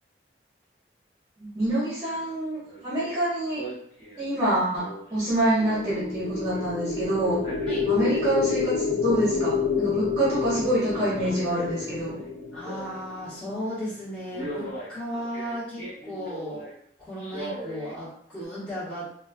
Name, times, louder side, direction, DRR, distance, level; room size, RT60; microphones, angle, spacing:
voice 1, 1.4-3.6 4.2-7.4 7.9-12.2, right 1 dB, 20° right, -10 dB, 1.1 m, -26 dB
Male speech man speaking, 2.1-2.3 2.6-3.2 3.5-6.8 7.2-8.6 8.8-9.7 10.8-13.2 13.6-13.9 14.3-16.7 17.2-17.9 18.4-18.5, right 1 dB, 40° left, 1.4 m, -40 dB
sound 1, 5.5-13.6, left 5 dB, 85° left, 0.4 m, -29 dB
voice 2, 12.5-16.6 17.0-19.1, equal, 5° left, -12 dB, 1.3 m, -35 dB
4.2 x 2.3 x 2.3 m, 0.66 s
head